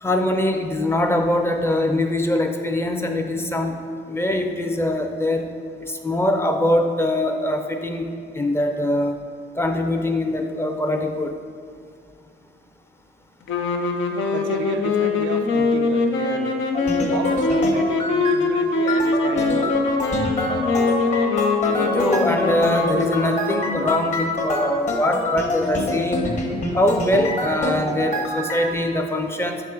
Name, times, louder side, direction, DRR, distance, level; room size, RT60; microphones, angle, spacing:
voice 1, 0.0-3.8 4.1-5.5 5.8-8.1 8.3-9.2 9.6-11.3 21.7-26.3 26.8-29.6, left 1 dB, 10° left, 4 dB, 0.6 m, -22 dB
sound 1, 13.5-23.9, left 3 dB, 75° left, 0.6 m, -23 dB
voice 2, 14.3-16.6 17.0-19.8, right 6 dB, 70° right, 7 dB, 0.4 m, -31 dB
sound 2, 16.7-18.4 18.9-28.7, left 1 dB, 35° left, 1.0 m, -26 dB
6.9 x 3.7 x 4.5 m, 2.3 s
cardioid pair, 90°, 20 cm